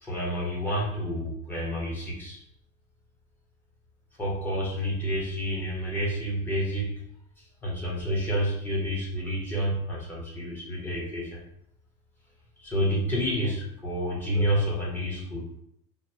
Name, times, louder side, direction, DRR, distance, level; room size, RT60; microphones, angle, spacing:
voice 1, 0.0-2.4 4.2-6.9 7.6-11.4 12.6-15.4, equal, 15° left, -4 dB, 1.0 m, -29 dB
3.0 x 2.1 x 4.2 m, 0.73 s
cardioid pair, 165°, 15 cm